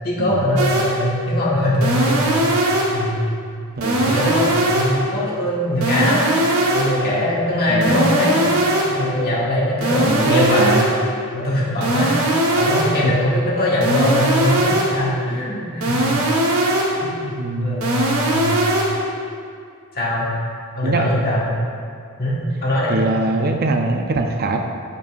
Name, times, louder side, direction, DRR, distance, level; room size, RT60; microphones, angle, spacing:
voice 1, 0.0-3.1 4.0-6.3 6.7-8.5 8.9-10.8 11.3-16.1 16.9-17.1 17.6-18.6 19.9-20.3 20.7-21.5 22.2-22.4 22.6-23.0, left 1 dB, 45° left, -6 dB, 1.7 m, -21 dB
sound 1, 0.6-1.1 1.8-3.1 3.8-5.1 5.8-7.1 7.8-9.1 9.8-11.1 11.8-13.1 13.8-15.1 15.8-17.1 17.8-19.1, right 1 dB, 75° right, 1.3 m, -20 dB
voice 2, 7.7-8.0 10.0-10.9 13.0-13.1 17.2-17.8 20.8-21.0 22.9-24.6, right 2 dB, 45° right, 3 dB, 0.5 m, -22 dB
14.0 x 5.3 x 2.6 m, 2.3 s
head